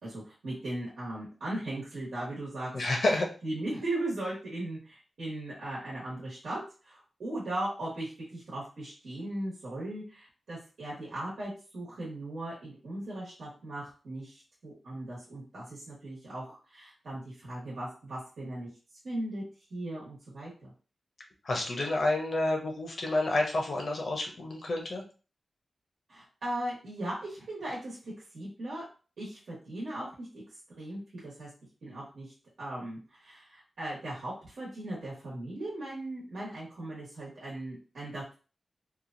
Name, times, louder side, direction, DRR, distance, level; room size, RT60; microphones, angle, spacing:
voice 1, 0.0-2.7 3.1-18.7 19.0-19.4 19.7-20.7 26.1-28.8 29.2-30.4 30.8-31.5 31.8-32.3 32.6-38.3, right 1 dB, 85° right, -7 dB, 1.2 m, -38 dB
voice 2, 2.7-3.3 21.4-25.0, left 2 dB, 55° left, 1 dB, 0.6 m, -29 dB
2.9 x 2.3 x 2.5 m, 0.36 s
wide cardioid pair, 145°, 0 cm